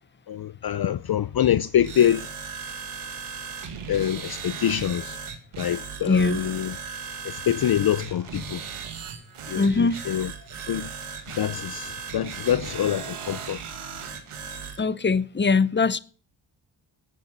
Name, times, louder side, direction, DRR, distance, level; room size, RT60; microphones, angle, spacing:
voice 1, 0.3-2.3 3.9-5.2 5.6-6.8 7.2-8.6 9.5-10.3 10.7-10.9 11.4-13.6, left 10 dB, 50° left, 0.6 m, -25 dB
sound 1, 1.7-14.8, right 6 dB, 85° right, 2.0 m, -37 dB
voice 2, 6.0-6.4 9.5-10.0 14.8-16.0, left 4 dB, 20° left, 0.8 m, -22 dB
10.0 x 9.0 x 9.4 m
cardioid pair, 60°, 49 cm